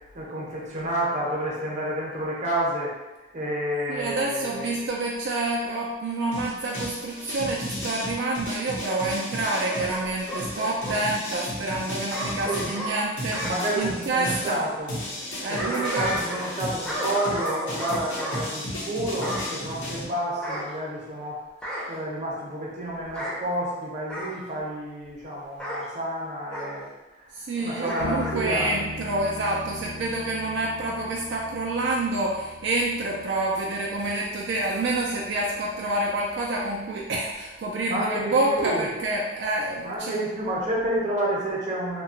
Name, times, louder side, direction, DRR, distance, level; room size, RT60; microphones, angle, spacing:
voice 1, 0.1-2.9 3.3-4.8 12.4-12.8 13.4-15.0 15.5-21.4 21.9-26.9 27.2-28.7 37.9-38.9 39.8-42.0, right 1 dB, 40° right, -5 dB, 0.7 m, -30 dB
voice 2, 3.9-14.6 15.4-16.1 27.3-40.2, right 2 dB, 70° right, -3 dB, 0.3 m, -28 dB
sound 1, 6.3-12.8 13.2-20.0, left 1 dB, 90° left, 0.7 m, -34 dB
Bark / Growling, 9.4-11.0 12.1-13.6 15.2-16.6 16.8-18.4 19.2-19.5 20.4-21.2 21.6-22.0 23.1-23.4 24.1-24.4 25.6-25.9 26.5-26.7 27.8-28.4 28.8-28.9, equal, 5° left, 0.5 m, -33 dB
sound 2, 28.0-37.5, left 2 dB, 65° left, 0.4 m, -41 dB
2.8 x 2.2 x 2.7 m, 1.1 s
head